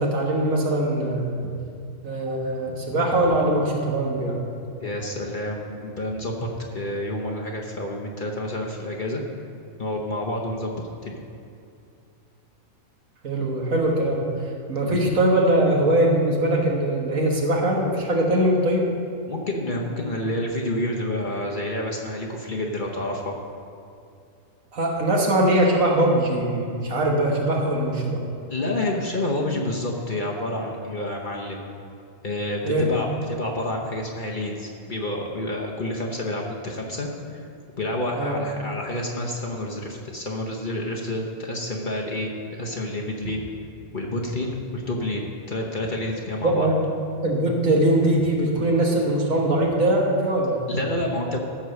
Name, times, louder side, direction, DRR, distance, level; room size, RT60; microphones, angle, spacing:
voice 1, 0.0-1.5 2.0-4.4 13.2-14.2 14.7-18.9 24.7-28.2 32.6-32.9 38.2-38.3 46.4-46.8 47.2-50.6, right 1 dB, 65° right, -1 dB, 1.8 m, -21 dB
voice 2, 4.8-6.5 6.7-9.2 9.8-10.8 11.0-11.2 14.9-15.0 19.3-23.4 28.5-31.6 32.2-37.5 37.8-43.4 43.9-46.7 50.7-51.4, left 1 dB, 40° left, -1 dB, 1.0 m, -29 dB
14.0 x 4.8 x 6.4 m, 2.5 s
omnidirectional pair, 1.5 m